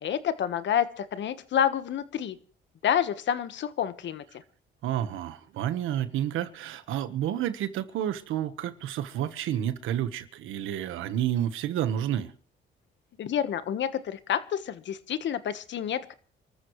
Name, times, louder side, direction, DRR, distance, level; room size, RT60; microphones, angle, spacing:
voice 1, 0.0-2.4 2.8-4.2 13.2-16.1, left 9 dB, 65° left, 1.3 m, -28 dB
voice 2, 4.8-12.3, right 11 dB, 90° right, 1.3 m, -30 dB
28.0 x 13.5 x 3.2 m
cardioid pair, 90°, 20 cm